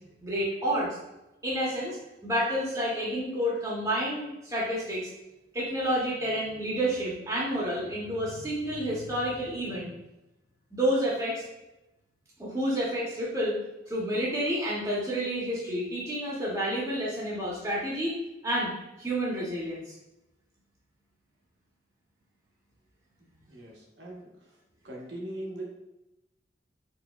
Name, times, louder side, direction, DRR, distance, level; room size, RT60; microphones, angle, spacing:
voice 1, 0.2-0.9 1.4-2.0 2.2-5.1 5.5-9.9 10.7-11.4 12.4-13.6 13.9-18.1 18.4-18.7 19.0-19.8, equal, 15° right, -6 dB, 0.7 m, -29 dB
voice 2, 23.5-24.3 24.8-25.8, right 1 dB, 75° right, -2 dB, 0.8 m, -40 dB
4.2 x 2.6 x 2.2 m, 0.94 s
head